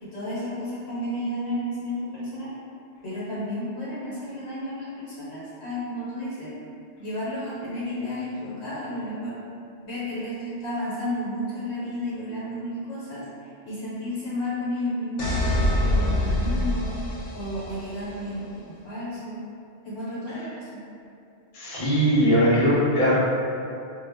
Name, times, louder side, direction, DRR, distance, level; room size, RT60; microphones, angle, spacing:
voice 1, 0.0-2.5 3.0-6.5 7.0-9.4 9.8-19.4 19.8-20.8, left 1 dB, 65° left, -9 dB, 1.0 m, -32 dB
sound 1, 15.2-18.1, left 1 dB, 85° left, 0.9 m, -25 dB
voice 2, 21.5-23.1, equal, 35° left, -10 dB, 0.7 m, -20 dB
2.1 x 2.0 x 3.3 m, 2.5 s
omnidirectional pair, 1.2 m